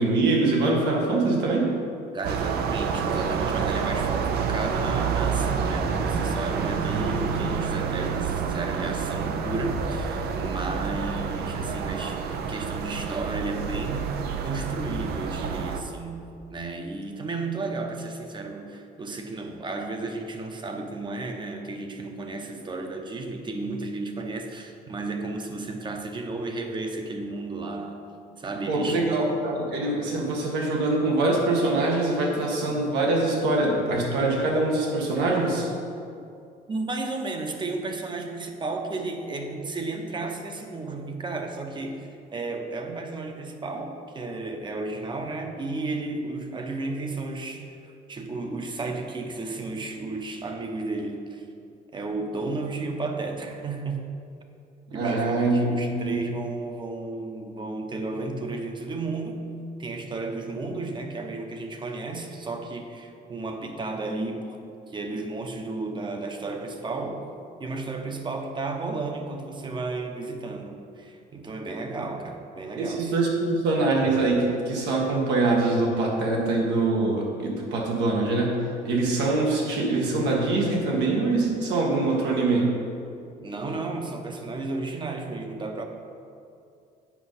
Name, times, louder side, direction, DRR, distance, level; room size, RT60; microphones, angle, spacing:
voice 1, 0.0-1.7 28.7-35.7 54.9-56.2 72.8-78.5 78.9-82.7, right 2 dB, 85° right, -2 dB, 1.8 m, -24 dB
voice 2, 2.1-16.2 16.5-28.0 28.4-29.1 36.7-51.5 51.9-54.1 54.9-59.5 59.8-64.6 64.9-67.2 67.6-73.1 83.4-85.8, right 3 dB, 25° right, 4 dB, 0.9 m, -33 dB
sound 1, 2.2-15.8, right 6 dB, 70° right, 0.7 m, -28 dB
8.3 x 5.3 x 5.7 m, 2.5 s
cardioid pair, 110°, 17 cm